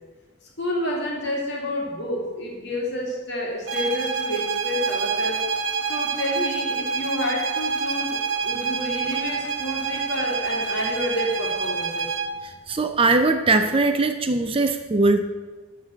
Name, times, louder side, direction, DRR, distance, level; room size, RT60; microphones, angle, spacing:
voice 1, 0.6-5.4 5.9-12.1, left 1 dB, 50° left, -1 dB, 2.4 m, -29 dB
sound 1, 3.7-12.4, right 5 dB, 65° right, 1.1 m, -27 dB
voice 2, 12.4-15.2, right 3 dB, 25° right, 8 dB, 0.4 m, -21 dB
11.5 x 4.0 x 7.6 m, 1.3 s
head